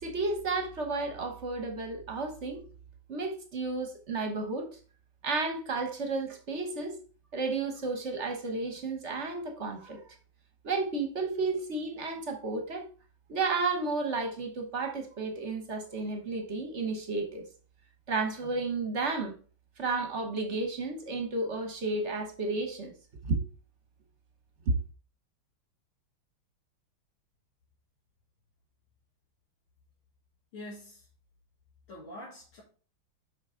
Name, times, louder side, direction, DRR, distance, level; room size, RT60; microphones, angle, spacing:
voice 1, 0.0-2.7 3.1-4.7 5.2-7.0 7.3-10.1 10.6-12.9 13.3-17.4 18.1-19.3 19.8-22.9 23.2-23.4 24.6-24.7, right 3 dB, 45° right, 1.1 m, -32 dB
voice 2, 30.5-31.1 31.9-32.6, left 1 dB, 75° left, 2.7 m, -45 dB
6.7 x 5.6 x 3.8 m
omnidirectional pair, 2.3 m